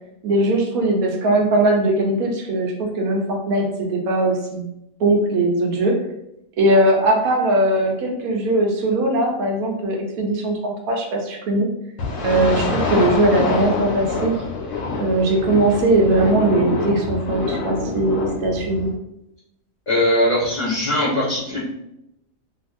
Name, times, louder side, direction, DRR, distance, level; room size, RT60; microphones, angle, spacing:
voice 1, 0.2-4.7 5.0-5.9 6.6-11.7 12.2-14.3 15.0-18.9, right 2 dB, 80° right, 1 dB, 1.1 m, -20 dB
sound 1, 12.0-18.9, left 3 dB, 70° left, 1.1 m, -25 dB
voice 2, 19.9-21.6, left 1 dB, 35° left, -8 dB, 1.0 m, -20 dB
2.8 x 2.6 x 2.4 m, 0.83 s
omnidirectional pair, 1.5 m